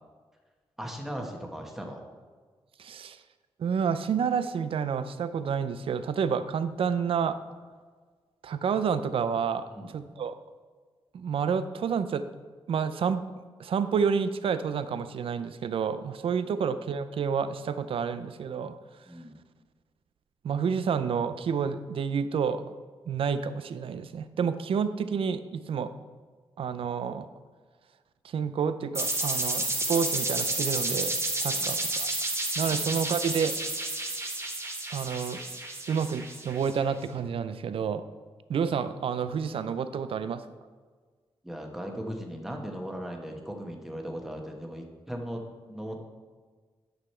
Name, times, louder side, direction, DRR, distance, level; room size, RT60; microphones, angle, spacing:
voice 1, 0.8-2.0 9.7-9.9 16.4-16.6 19.1-19.3 31.5-31.7 41.4-45.4 45.7-46.0, equal, 5° right, 2 dB, 1.1 m, -38 dB
voice 2, 2.8-3.2 3.6-7.4 8.4-10.3 11.1-12.2 12.7-13.2 13.6-18.7 20.4-22.6 23.1-25.9 26.6-27.3 28.2-32.1 32.6-33.5 34.9-35.4 35.9-38.0 38.5-40.4, right 6 dB, 65° right, 12 dB, 0.5 m, -29 dB
sound 1, 28.9-36.7, right 2 dB, 25° right, 1.4 m, -31 dB
9.6 x 6.3 x 4.4 m, 1.5 s
cardioid pair, 90°, 10 cm